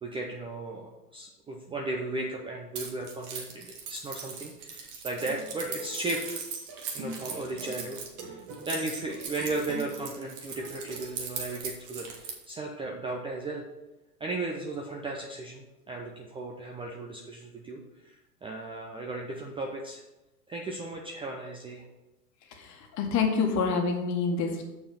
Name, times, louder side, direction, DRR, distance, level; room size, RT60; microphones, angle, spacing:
voice 1, 0.0-6.4 6.9-8.4 8.6-13.6 14.2-20.0 20.5-21.8, right 2 dB, 10° right, 0 dB, 0.6 m, -36 dB
Keys jangling, 2.8-12.5, right 6 dB, 45° right, 2.0 m, -39 dB
sound 1, 5.2-11.6, right 2 dB, 30° right, 1.5 m, -44 dB
voice 2, 22.5-24.6, left 5 dB, 35° left, 3 dB, 1.6 m, -27 dB
7.0 x 5.6 x 5.7 m, 1.0 s
hypercardioid pair, 110°, 49 cm